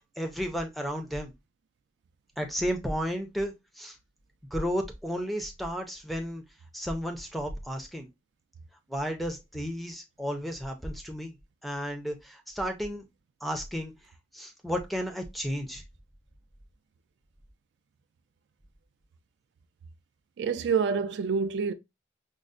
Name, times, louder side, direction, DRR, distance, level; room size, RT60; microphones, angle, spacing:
voice 1, 0.2-1.3 2.4-4.0 4.5-6.4 6.7-8.1 8.9-11.3 11.6-13.0 13.4-13.9 14.3-15.8, equal, ahead, 0.4 m, -33 dB
voice 2, 20.4-21.7, right 6 dB, 70° right, 0.3 m, -27 dB
5.3 x 2.0 x 2.4 m
head